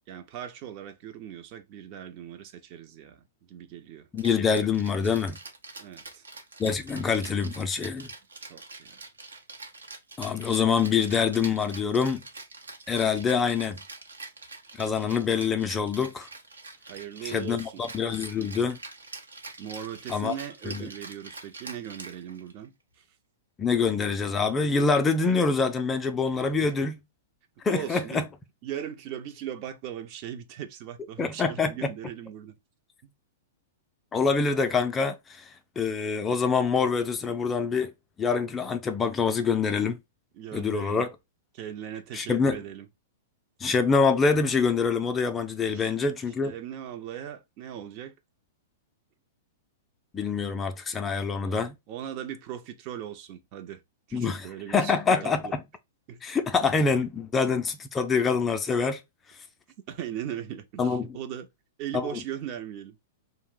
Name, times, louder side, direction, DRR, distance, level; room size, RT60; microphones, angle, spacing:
voice 1, 0.1-4.1 5.8-6.3 8.4-9.0 16.9-17.8 19.6-23.0 26.6-26.9 27.6-28.3 28.6-32.6 33.0-33.1 40.3-41.1 41.5-42.9 45.7-45.9 46.4-48.1 51.4-53.8 54.1-55.5 56.1-56.4 59.9-61.5 61.8-63.0, right 10 dB, 45° right, 0.5 m, -39 dB
voice 2, 4.1-5.4 6.6-8.1 10.2-12.2 12.9-13.8 14.8-16.3 17.2-18.8 20.1-20.3 20.7-20.9 23.6-27.0 27.6-28.3 31.2-31.9 34.1-37.9 38.2-40.0 40.5-41.1 42.1-42.6 43.6-46.5 50.1-51.8 54.1-55.6 56.2-59.0 60.8-61.2 61.9-62.2, left 5 dB, 20° left, 0.4 m, -25 dB
Rattle (instrument), 4.2-22.7, right 3 dB, 85° right, 0.7 m, -45 dB
2.5 x 2.0 x 3.6 m
hypercardioid pair, 110°, 0 cm